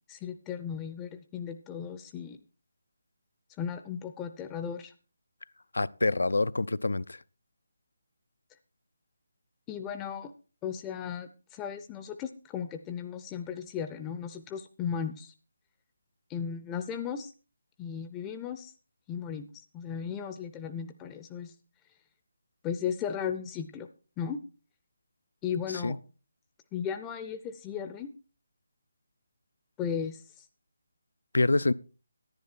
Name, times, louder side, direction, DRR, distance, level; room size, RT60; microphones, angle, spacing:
voice 1, 0.1-2.4 3.6-4.9 9.7-10.3 10.6-15.3 16.3-17.3 17.8-18.7 19.1-19.5 19.7-21.5 22.6-23.9 24.2-24.4 25.4-26.0 26.7-28.1 29.8-30.5, left 7 dB, 15° left, 0.6 m, -36 dB
voice 2, 5.7-7.2 25.8-26.0 31.3-31.7, left 2 dB, 70° left, 0.5 m, -26 dB
10.5 x 10.5 x 4.4 m
figure-of-eight pair, 150°, 0 cm